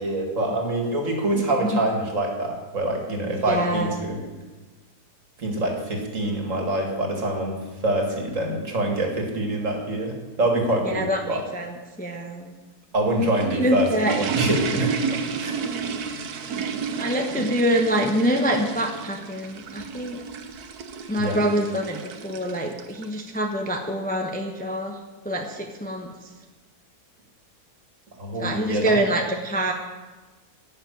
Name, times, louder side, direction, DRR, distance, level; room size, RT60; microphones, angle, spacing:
voice 1, 0.0-4.2 5.4-11.4 12.9-15.0 15.4-15.6 21.2-21.4 28.2-29.0, right 1 dB, 50° right, 2 dB, 2.5 m, -25 dB
voice 2, 3.3-3.9 10.8-12.5 13.5-14.2 14.5-14.6 15.1-15.2 17.0-20.2 21.1-25.0 25.2-26.1 28.4-29.7, equal, 5° left, 2 dB, 0.8 m, -25 dB
sound 1, 13.0-23.3, right 5 dB, 75° right, 1.5 m, -32 dB
11.5 x 6.8 x 9.2 m, 1.3 s
omnidirectional pair, 1.7 m